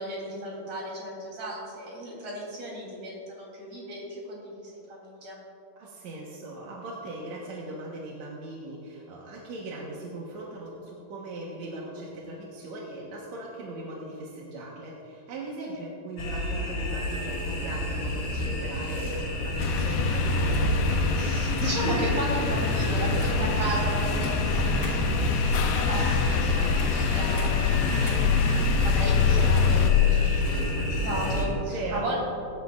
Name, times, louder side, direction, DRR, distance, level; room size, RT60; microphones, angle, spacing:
voice 1, 0.0-5.4 21.2-32.2, right 1 dB, 40° right, -4 dB, 4.3 m, -35 dB
voice 2, 5.8-19.2 19.4-20.6 31.7-32.1, right 2 dB, 60° right, -4 dB, 2.0 m, -39 dB
sound 1, 16.2-31.5, equal, 60° left, 5.1 m, -29 dB
sound 2, 19.4-20.0 20.5-20.8 21.5-21.8 22.4-22.7 23.1-23.5 24.2-24.4 24.8-25.0 25.4-27.0 27.4-27.5 28.0-28.2 28.7-28.8 29.4-30.4, left 1 dB, 25° left, 3.2 m, -40 dB
sound 3, 19.6-29.9, left 5 dB, 80° left, 1.9 m, -25 dB
22.5 x 12.0 x 2.5 m, 2.9 s
omnidirectional pair, 4.8 m